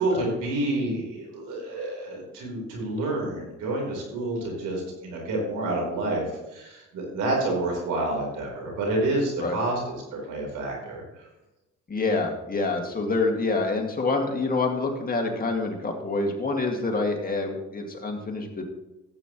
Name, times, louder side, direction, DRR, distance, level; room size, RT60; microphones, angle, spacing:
voice 1, 0.0-6.2 6.5-11.0, right 2 dB, 90° right, -1 dB, 4.0 m, -28 dB
voice 2, 11.9-18.6, left 3 dB, 30° left, 1 dB, 2.2 m, -27 dB
14.0 x 8.5 x 3.1 m, 0.99 s
cardioid pair, 90°, 30 cm